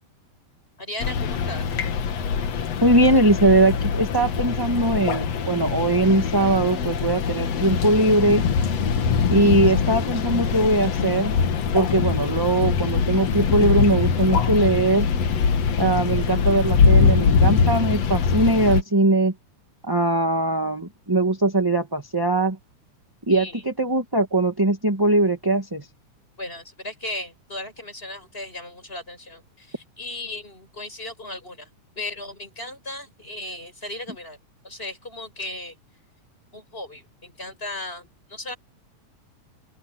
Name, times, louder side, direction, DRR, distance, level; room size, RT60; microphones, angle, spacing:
voice 1, 0.8-1.7 23.3-23.6 26.4-31.7 32.0-34.4 34.6-35.8 36.5-38.6, left 2 dB, 15° left, 7.2 m, -36 dB
sound 1, 1.0-18.8, left 6 dB, 60° left, 2.6 m, -22 dB
voice 2, 2.8-8.4 9.3-11.3 11.7-15.1 15.8-19.3 19.8-22.6 23.3-25.9, right 2 dB, 10° right, 1.3 m, -21 dB
open air
omnidirectional pair, 3.6 m